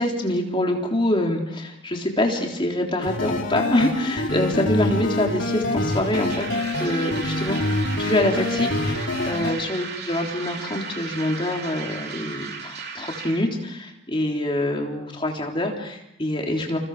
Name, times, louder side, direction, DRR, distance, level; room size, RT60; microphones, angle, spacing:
voice 1, 0.0-6.5 6.8-16.8, left 1 dB, 25° left, 1 dB, 3.8 m, -25 dB
sound 1, 3.0-9.5, left 1 dB, 60° left, 3.4 m, -26 dB
sound 2, 5.8-13.4, right 5 dB, 50° right, 3.3 m, -36 dB
29.0 x 28.0 x 5.0 m, 0.78 s
head